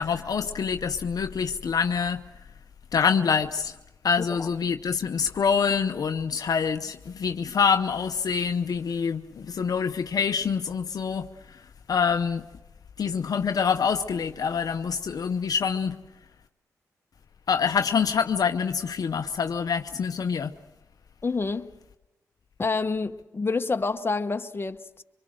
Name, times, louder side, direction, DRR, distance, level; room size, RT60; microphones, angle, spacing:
voice 1, 0.0-2.2 2.9-3.8 4.0-12.5 13.0-16.0 17.5-20.5, left 6 dB, 65° left, 0.7 m, -26 dB
voice 2, 4.2-4.5 21.2-21.7 22.6-25.0, left 4 dB, 35° left, 1.1 m, -28 dB
25.0 x 22.5 x 6.4 m
supercardioid pair, 45°, 7 cm